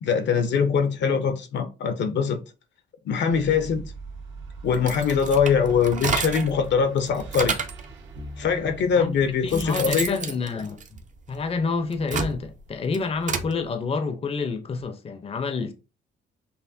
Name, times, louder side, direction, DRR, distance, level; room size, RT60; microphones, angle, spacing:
voice 1, 0.0-2.4 3.0-3.8 4.6-7.6 8.4-10.2, left 6 dB, 65° left, 0.7 m, -22 dB
sound 1, 3.3-10.2, right 3 dB, 75° right, 1.5 m, -41 dB
sound 2, 4.7-6.6 7.0-7.9 8.7-8.8 9.2-11.4 11.8-13.5, right 5 dB, 40° right, 0.7 m, -30 dB
voice 2, 9.4-11.0 11.3-15.7, left 4 dB, 30° left, 0.6 m, -28 dB
5.6 x 2.1 x 2.6 m
cardioid pair, 90°, 20 cm